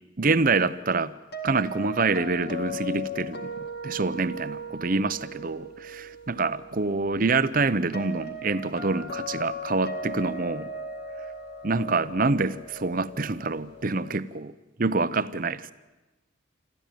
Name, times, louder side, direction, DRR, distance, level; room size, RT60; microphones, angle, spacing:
voice 1, 0.2-1.1 1.4-3.5 3.8-10.7 11.6-14.5 14.8-15.7, right 3 dB, 45° right, 0.7 m, -26 dB
sound 1, 1.3-14.2, equal, 50° left, 2.0 m, -38 dB
26.0 x 14.0 x 9.2 m
head